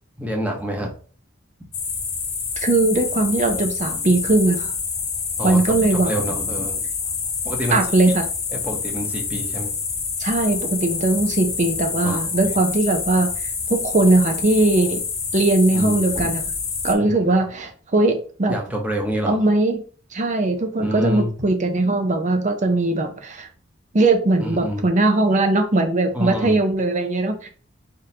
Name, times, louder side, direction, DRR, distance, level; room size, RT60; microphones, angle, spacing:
voice 1, 0.2-0.9 5.4-6.8 7.4-7.8 8.5-9.7 12.0-12.3 15.7-16.3 17.0-17.1 18.5-19.4 20.8-21.3 24.4-24.8 26.1-26.6, equal, 10° right, 0 dB, 1.1 m, -27 dB
sound 1, 1.7-16.9, left 5 dB, 35° left, 1.0 m, -27 dB
voice 2, 2.6-4.7 5.4-6.1 7.7-8.2 10.2-13.3 13.7-15.0 15.3-16.4 16.8-18.5 19.3-19.8 20.1-23.5 23.9-27.5, right 2 dB, 35° right, 5 dB, 0.7 m, -19 dB
4.8 x 3.6 x 2.9 m, 0.40 s
head